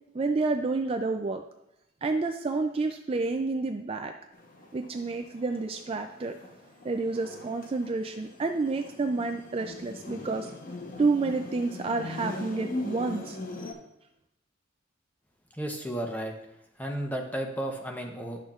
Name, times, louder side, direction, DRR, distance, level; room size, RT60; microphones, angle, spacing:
voice 1, 0.1-1.4 2.0-4.1 4.7-6.4 6.8-10.5 11.0-13.4, right 3 dB, 30° right, 5 dB, 0.3 m, -29 dB
sound 1, 4.3-13.7, left 2 dB, 45° left, 0.9 m, -41 dB
voice 2, 15.5-16.3 16.8-18.4, right 1 dB, 10° left, 2 dB, 0.8 m, -33 dB
11.5 x 6.3 x 2.4 m, 0.85 s
head